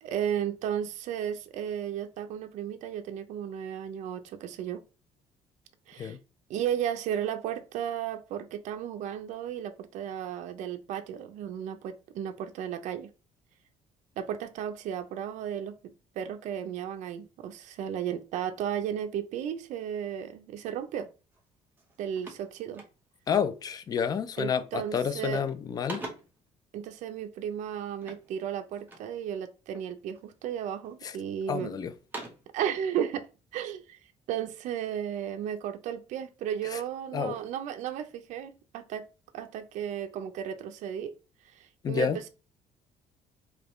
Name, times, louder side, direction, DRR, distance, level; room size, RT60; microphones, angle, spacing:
voice 1, 0.0-4.8 5.9-6.2 6.5-13.1 14.2-21.1 22.0-22.8 24.4-25.5 26.7-31.8 32.5-33.3 33.5-34.0 34.3-39.0 39.3-41.1 41.4-42.3, right 9 dB, 70° right, 0.5 m, -34 dB
sound 1, 21.3-21.5 21.8-23.3 23.9-24.3 24.6-25.1 25.4-26.5 28.0-29.2 29.7-30.3 30.9-31.5 31.9-32.6, right 2 dB, 15° right, 0.9 m, -45 dB
voice 2, 23.3-26.0 31.0-31.1 31.5-31.9 36.7-36.8 37.1-37.4 41.8-42.2, left 7 dB, 30° left, 0.4 m, -29 dB
5.0 x 2.2 x 3.1 m
cardioid pair, 150°, 13 cm